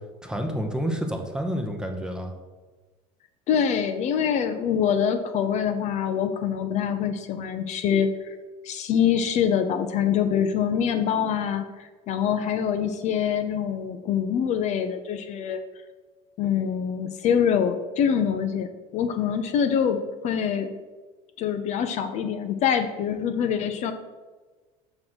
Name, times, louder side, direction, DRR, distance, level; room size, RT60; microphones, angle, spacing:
voice 1, 0.2-2.3, equal, 5° right, 3 dB, 0.8 m, -29 dB
voice 2, 3.5-8.4 8.6-15.6 16.4-20.7 21.4-23.9, left 8 dB, 45° left, 7 dB, 0.5 m, -25 dB
6.1 x 3.7 x 6.2 m, 1.3 s
cardioid pair, 125°, 16 cm